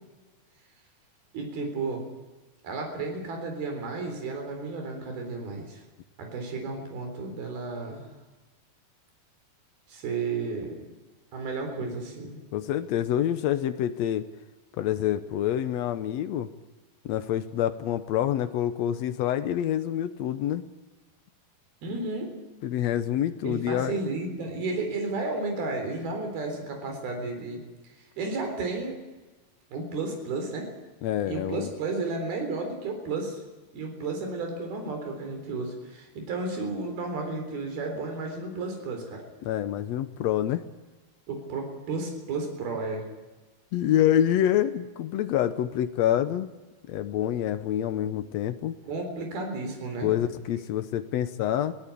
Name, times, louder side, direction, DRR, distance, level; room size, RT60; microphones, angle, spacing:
voice 1, 1.3-2.0 2.6-5.8 6.2-8.1 9.9-10.9 11.3-12.4 21.8-22.3 23.4-27.6 28.2-29.0 29.7-30.7 31.3-33.4 33.7-39.2 41.3-43.0 48.8-50.1, right 3 dB, 85° right, 3 dB, 5.7 m, -32 dB
voice 2, 12.5-14.3 14.8-16.5 17.0-20.6 22.6-24.1 31.0-31.7 39.4-40.6 43.7-46.5 46.9-48.8 50.0-51.7, left 11 dB, 85° left, 10 dB, 1.5 m, -27 dB
22.5 x 17.5 x 8.5 m, 1.2 s
omnidirectional pair, 4.3 m